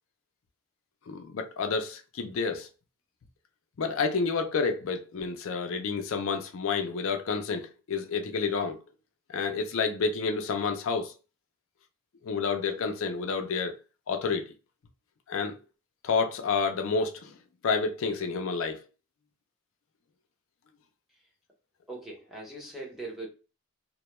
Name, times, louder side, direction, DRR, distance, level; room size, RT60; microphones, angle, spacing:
voice 1, 1.1-2.7 3.8-8.8 9.3-11.1 12.2-13.7 14.1-14.5 15.3-15.5 16.0-17.4 17.6-18.8, left 5 dB, 70° left, 0.4 m, -29 dB
voice 2, 21.9-23.3, right 2 dB, ahead, 0.6 m, -40 dB
2.2 x 2.1 x 2.9 m
head